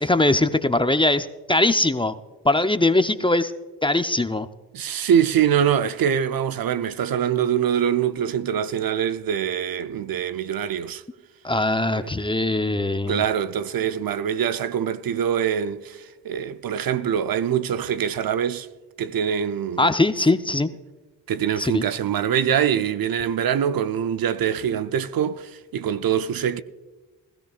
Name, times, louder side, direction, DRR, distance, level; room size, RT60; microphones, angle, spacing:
voice 1, 0.0-2.2 2.4-3.5 3.8-4.5 11.4-13.2 19.8-20.7 21.6-21.8, left 2 dB, 15° left, 0.7 m, -21 dB
voice 2, 4.7-11.0 11.9-12.1 13.1-18.7 19.0-19.9 21.3-26.6, right 9 dB, 60° right, 0.7 m, -24 dB
20.0 x 13.5 x 2.4 m
supercardioid pair, 45°, 39 cm